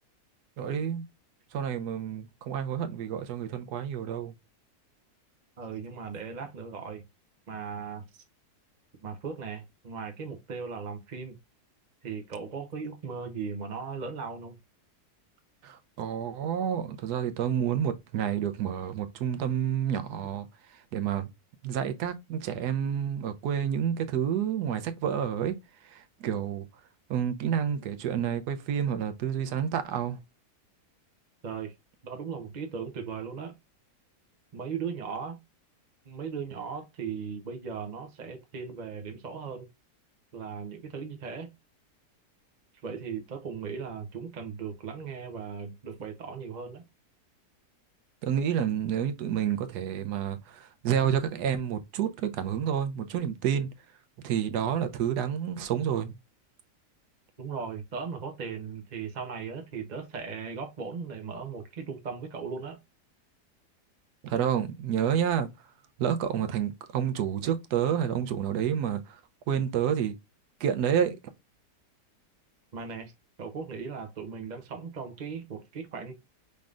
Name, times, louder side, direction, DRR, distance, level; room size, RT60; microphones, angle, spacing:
voice 1, 0.6-1.1 1.5-4.3 15.6-20.5 20.9-21.3 21.6-25.5 25.8-26.7 27.1-30.2 48.2-53.7 54.2-56.1 64.2-65.5 66.0-69.2 69.5-70.1 70.6-71.2, right 9 dB, 80° right, 1.2 m, -29 dB
voice 2, 5.6-7.0 7.5-8.1 9.0-11.3 12.0-14.6 31.4-31.7 32.0-33.5 34.5-35.4 36.1-39.7 40.3-41.5 42.8-46.8 57.4-62.8 72.7-73.1 73.4-76.1, right 6 dB, 45° right, 0.6 m, -37 dB
5.3 x 3.3 x 2.4 m
omnidirectional pair, 1.7 m